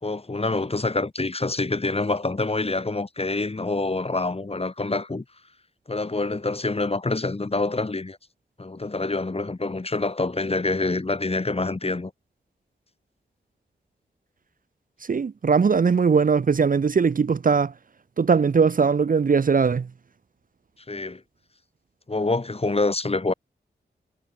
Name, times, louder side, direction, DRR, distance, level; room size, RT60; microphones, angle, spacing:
voice 1, 0.0-5.2 5.9-8.2 8.6-12.1 20.9-21.2 22.1-23.3, left 3 dB, 35° left, 3.7 m, -26 dB
voice 2, 15.1-17.7 18.2-19.9, right 5 dB, 50° right, 0.8 m, -20 dB
cardioid pair, 55°, 18 cm